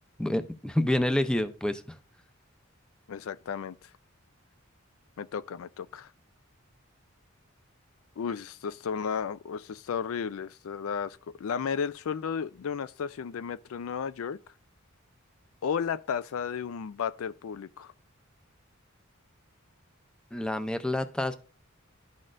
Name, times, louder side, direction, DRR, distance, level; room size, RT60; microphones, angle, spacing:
voice 1, 0.2-2.0 20.3-21.3, left 1 dB, 5° left, 0.5 m, -28 dB
voice 2, 3.1-3.8 5.2-6.1 8.2-14.4 15.6-17.9, left 7 dB, 80° left, 0.4 m, -33 dB
12.0 x 4.2 x 2.5 m
head